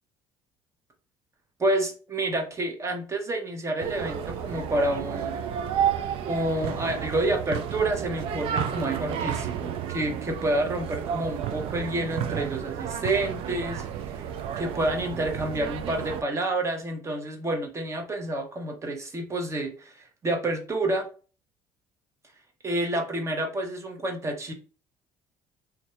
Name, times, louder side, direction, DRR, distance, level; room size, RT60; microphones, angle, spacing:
voice 1, 1.6-5.4 6.2-13.8 14.1-14.2 14.6-21.1 22.6-24.5, right 1 dB, 30° right, 3 dB, 1.0 m, -29 dB
sound 1, 3.8-16.2, right 9 dB, 65° right, 0.4 m, -31 dB
2.6 x 2.4 x 4.1 m, 0.37 s
supercardioid pair, 75°, 10 cm